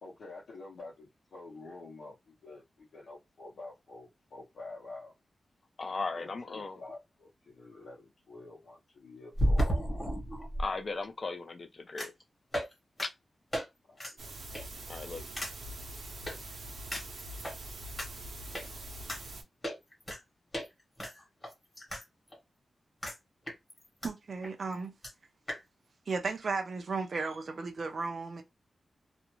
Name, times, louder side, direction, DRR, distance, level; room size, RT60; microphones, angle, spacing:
voice 1, 0.0-5.1 6.1-9.9 13.9-14.4, left 2 dB, 80° left, 0.8 m, -48 dB
voice 2, 5.8-6.8 10.6-12.1 13.0-13.1 14.9-15.3, left 3 dB, 35° left, 0.4 m, -37 dB
sound 1, 6.9-7.0 9.3-10.7 12.0-12.2 12.5-12.7 13.0-13.1 13.5-13.6 14.0-14.1 14.5-14.8 15.4-15.5 16.3-16.4 16.9-17.5 18.0-18.1 18.5-18.6 19.1-19.2 19.6-20.2 20.5-20.7 21.0-22.0 22.3-22.4 23.0-23.2 23.5-24.1 24.4-24.5 24.7-24.8 25.0-25.1 25.5-25.6, equal, 15° left, 1.1 m, -33 dB
sound 2, 14.2-19.4, right 1 dB, 90° right, 0.7 m, -44 dB
voice 3, 24.0-24.9 26.1-28.4, right 4 dB, 45° right, 0.5 m, -35 dB
2.5 x 2.1 x 2.9 m
wide cardioid pair, 175°, 0 cm